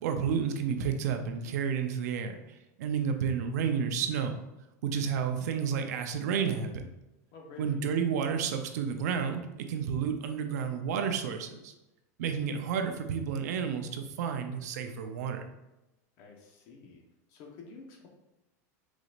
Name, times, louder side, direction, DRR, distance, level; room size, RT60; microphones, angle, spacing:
voice 1, 0.0-2.3 2.8-4.3 4.8-6.9 7.6-11.7 12.2-15.4, right 7 dB, 75° right, 6 dB, 0.6 m, -31 dB
voice 2, 7.3-7.8 16.2-17.0 17.3-18.1, left 4 dB, 45° left, 1 dB, 1.0 m, -49 dB
4.8 x 4.0 x 2.5 m, 0.96 s
supercardioid pair, 165°, 9 cm